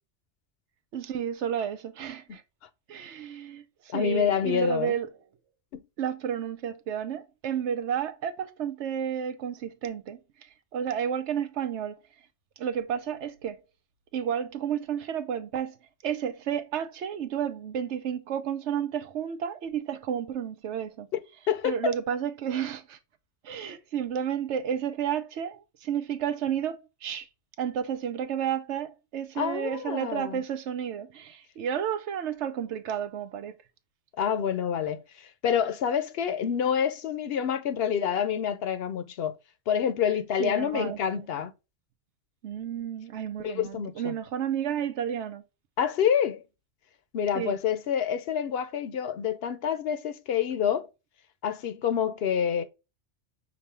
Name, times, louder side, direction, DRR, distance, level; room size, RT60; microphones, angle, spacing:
voice 1, 0.9-2.4 2.9-5.1 6.0-12.0 12.6-13.6 14.1-15.8 16.0-21.1 21.6-23.0 23.4-27.3 27.6-33.6 40.4-41.0 42.4-45.4 47.3-47.6, right 8 dB, 85° right, 1.0 m, -31 dB
voice 2, 3.9-4.9 5.7-5.8 21.5-21.9 29.4-30.4 34.2-39.4 39.7-41.5 43.4-44.1 45.8-46.4 47.1-50.9 51.4-52.6, left 8 dB, 65° left, 0.8 m, -27 dB
6.1 x 2.7 x 3.2 m
omnidirectional pair, 1.2 m